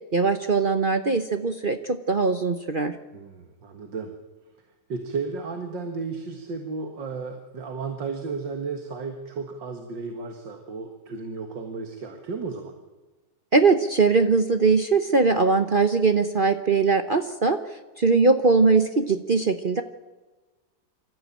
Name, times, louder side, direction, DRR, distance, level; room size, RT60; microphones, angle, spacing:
voice 1, 0.1-3.0 13.5-17.6 18.0-19.8, right 4 dB, 40° right, 8 dB, 0.9 m, -21 dB
voice 2, 3.1-4.1 4.9-12.7, right 4 dB, 90° right, 5 dB, 2.4 m, -33 dB
26.0 x 14.5 x 8.9 m, 1.2 s
omnidirectional pair, 1.9 m